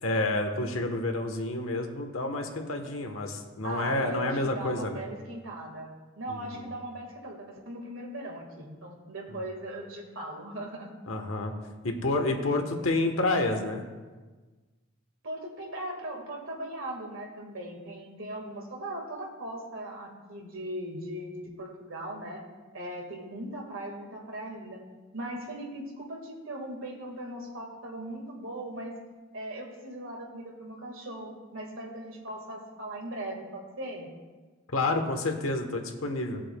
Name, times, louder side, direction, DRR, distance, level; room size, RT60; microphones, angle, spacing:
voice 1, 0.0-5.0 6.3-6.7 9.3-9.4 11.1-11.5 11.8-13.8 34.7-36.4, left 2 dB, 80° left, 4 dB, 1.1 m, -29 dB
voice 2, 3.6-10.9 15.2-22.4 22.7-24.8 25.1-29.0 29.3-34.1, right 1 dB, 75° right, 0 dB, 1.8 m, -39 dB
17.5 x 7.6 x 2.3 m, 1.3 s
head